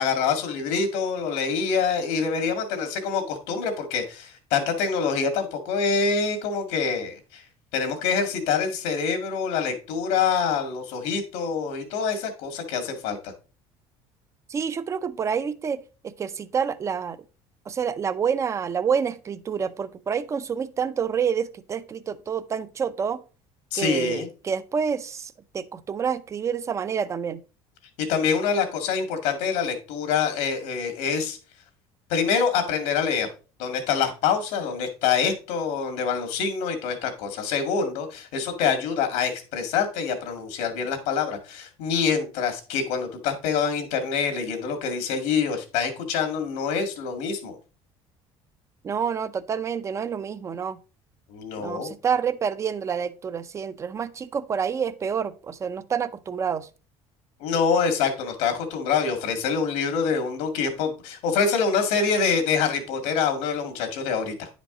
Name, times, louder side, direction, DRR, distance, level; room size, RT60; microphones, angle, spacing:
voice 1, 0.0-7.4 7.7-13.3 23.7-24.3 28.0-31.4 32.1-33.3 33.6-47.6 51.3-51.9 57.4-64.5, left 6 dB, 90° left, 2.0 m, -25 dB
voice 2, 14.5-17.2 17.7-23.2 23.7-27.4 48.8-50.8 51.6-56.7, right 7 dB, 25° right, 0.6 m, -28 dB
10.0 x 5.2 x 3.8 m
cardioid pair, 145°, 11 cm